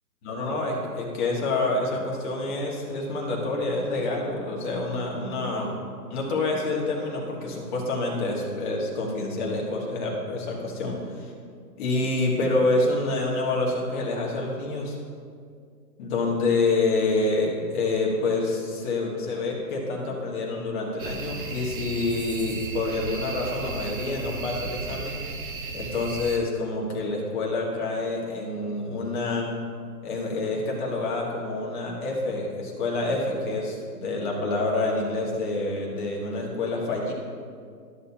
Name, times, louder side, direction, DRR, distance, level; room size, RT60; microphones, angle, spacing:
voice 1, 0.2-5.8 6.1-11.2 11.8-14.9 16.0-25.2 25.7-29.5 30.0-37.1, left 2 dB, 30° left, -2 dB, 1.6 m, -27 dB
sound 1, 21.0-26.4, right 3 dB, 35° right, 0.6 m, -35 dB
12.5 x 6.6 x 2.8 m, 2.2 s
hypercardioid pair, 145°, 50 cm